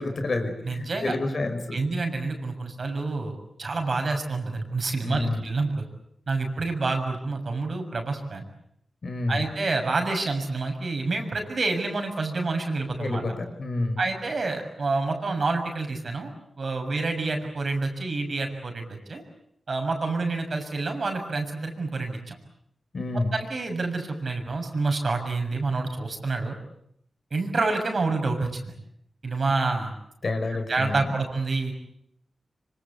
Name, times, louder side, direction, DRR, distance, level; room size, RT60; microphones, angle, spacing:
voice 1, 0.0-1.8 5.0-5.4 9.0-9.4 13.0-14.1 22.9-23.3 30.2-31.1, left 2 dB, 60° left, 6 dB, 5.2 m, -29 dB
voice 2, 0.6-1.1 1.7-5.8 6.3-8.5 9.3-13.2 14.0-16.3 16.6-19.2 19.7-22.4 23.3-26.6 27.3-28.7 29.2-29.9 30.7-31.7, right 3 dB, 60° right, 4 dB, 6.7 m, -28 dB
26.0 x 25.5 x 8.3 m, 0.73 s
cardioid pair, 70°, 0 cm